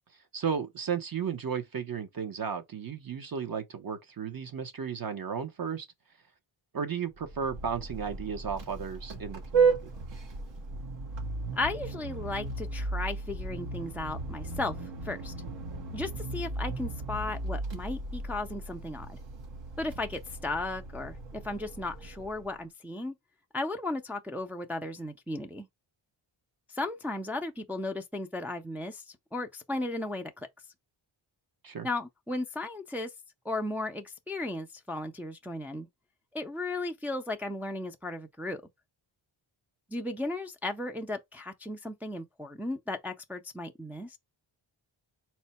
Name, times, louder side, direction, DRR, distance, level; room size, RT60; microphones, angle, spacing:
voice 1, 0.3-5.9 6.7-9.9 31.6-31.9, right 7 dB, 45° right, 0.8 m, -34 dB
Vehicle horn car horn honking, 7.2-22.6, right 4 dB, 65° right, 1.1 m, -34 dB
voice 2, 11.5-14.7 15.0-15.3 15.9-19.2 19.8-23.1 23.5-25.7 26.7-30.5 31.8-33.1 33.5-35.9 36.3-38.6 39.9-44.2, left 2 dB, 5° right, 0.3 m, -35 dB
4.2 x 2.1 x 4.1 m
wide cardioid pair, 115°, 48 cm